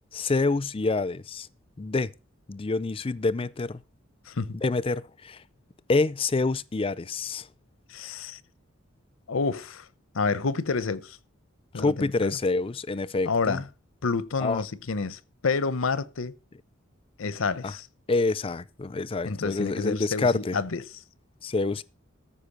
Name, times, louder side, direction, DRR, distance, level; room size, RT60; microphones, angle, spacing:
voice 1, 0.1-1.5 1.8-2.1 2.5-3.8 4.5-5.4 5.9-7.5 11.7-13.6 14.4-14.6 17.6-17.7 18.1-20.6 21.4-21.8, left 3 dB, 25° left, 0.4 m, -27 dB
voice 2, 4.3-4.6 7.9-8.4 9.3-9.8 10.1-11.2 11.7-12.3 13.3-13.6 14.0-16.3 17.2-17.9 19.2-20.8, left 4 dB, 80° left, 0.8 m, -29 dB
14.0 x 5.2 x 6.6 m
head